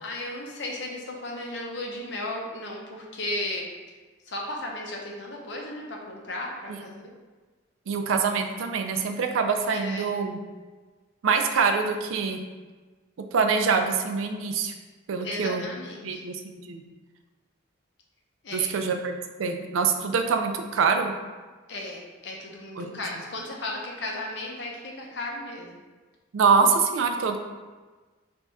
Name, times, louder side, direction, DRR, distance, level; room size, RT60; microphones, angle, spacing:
voice 1, 0.0-3.7 4.3-7.1 9.7-10.1 15.2-16.2 18.4-18.7 21.7-25.8, left 1 dB, 60° left, 0 dB, 0.6 m, -35 dB
voice 2, 7.9-10.4 11.2-12.4 13.3-14.7 15.1-15.7 16.0-16.8 18.5-19.1 19.4-21.1 22.8-22.9 26.3-27.4, right 5 dB, 85° right, 5 dB, 0.4 m, -24 dB
3.5 x 2.3 x 4.0 m, 1.3 s
head